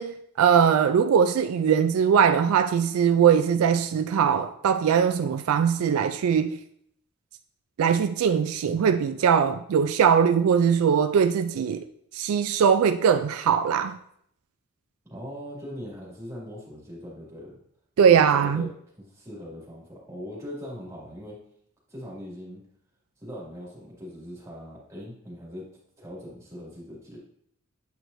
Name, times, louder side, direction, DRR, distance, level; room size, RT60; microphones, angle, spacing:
voice 1, 0.0-6.6 7.8-11.8 12.1-14.0 18.0-18.7, right 7 dB, 75° right, 0.3 m, -21 dB
voice 2, 15.1-17.6 18.1-18.7 19.0-21.4 21.9-22.6 23.2-25.7 26.0-27.2, equal, 15° right, 2.1 m, -40 dB
8.2 x 4.6 x 2.6 m
head